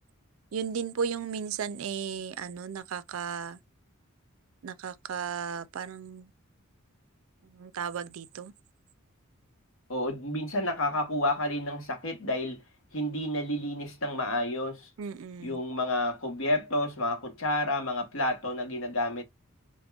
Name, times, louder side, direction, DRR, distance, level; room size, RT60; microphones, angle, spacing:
voice 1, 0.5-3.6 4.6-6.3 7.4-8.5 15.0-15.6, right 7 dB, 70° right, 0.4 m, -35 dB
voice 2, 9.9-12.6 12.9-14.9 15.4-19.2, left 1 dB, 65° left, 1.0 m, -30 dB
5.0 x 2.1 x 2.3 m
head